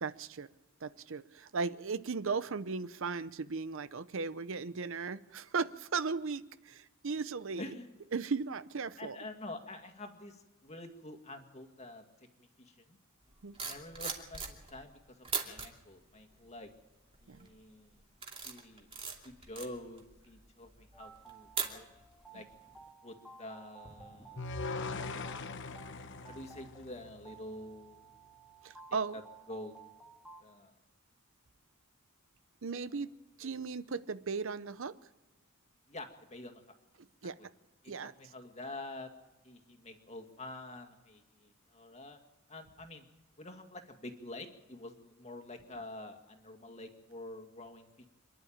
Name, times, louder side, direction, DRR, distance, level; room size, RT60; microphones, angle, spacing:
voice 1, 0.0-0.5 0.8-7.7 8.1-9.2 13.4-13.6 17.3-17.5 22.3-22.4 28.6-29.2 32.6-33.1 33.4-34.9 37.2-37.4 37.9-38.1, right 4 dB, 60° right, 14 dB, 0.7 m, -37 dB
voice 2, 7.6-7.9 9.0-12.0 12.4-13.0 13.6-16.7 17.2-18.0 18.4-18.9 19.2-21.9 22.3-22.5 23.0-24.4 26.2-28.1 29.1-29.2 29.5-29.7 30.4-30.7 35.9-36.8 37.4-37.5 37.8-39.1 39.4-42.2 42.5-43.1 43.4-48.1, left 2 dB, 30° left, 6 dB, 2.1 m, -47 dB
sound 1, 13.3-14.9 15.2-15.7 16.3-16.7 17.1-17.5 17.9-22.2 22.5-22.8, right 5 dB, 25° right, 2.7 m, -40 dB
sound 2, 20.9-30.4, right 4 dB, 5° right, 2.2 m, -55 dB
sound 3, 24.4-27.6, left 3 dB, 55° left, 1.1 m, -41 dB
27.5 x 11.0 x 8.8 m, 1.1 s
head